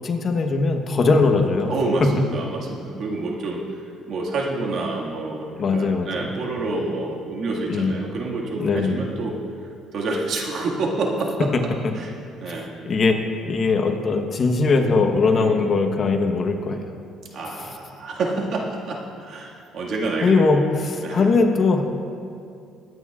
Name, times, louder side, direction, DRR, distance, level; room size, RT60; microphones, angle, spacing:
voice 1, 0.0-1.7 5.6-6.3 7.7-8.1 8.6-9.0 11.5-11.6 12.5-13.2 13.4-16.8 17.5-17.7 20.2-21.8, left 4 dB, 40° left, 5 dB, 1.1 m, -20 dB
voice 2, 1.7-3.6 4.1-9.4 9.9-11.5 12.0-12.1 12.4-12.7 15.3-15.7 17.3-20.4 21.0-21.3, right 3 dB, 60° right, -2 dB, 1.9 m, -28 dB
22.0 x 9.6 x 2.5 m, 2.4 s
cardioid pair, 105°, 0 cm